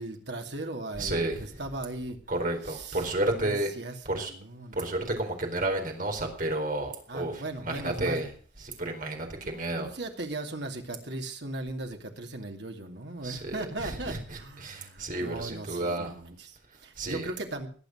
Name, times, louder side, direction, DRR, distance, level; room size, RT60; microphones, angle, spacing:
voice 1, 0.0-2.2 2.6-3.1 3.3-4.8 7.1-8.2 9.4-17.7, right 2 dB, 60° right, 4 dB, 2.7 m, -38 dB
voice 2, 1.0-1.6 2.3-3.7 4.0-4.3 4.7-8.3 8.6-9.9 13.2-16.1 17.0-17.3, right 2 dB, 45° right, 3 dB, 4.2 m, -31 dB
21.0 x 8.2 x 6.4 m, 0.43 s
head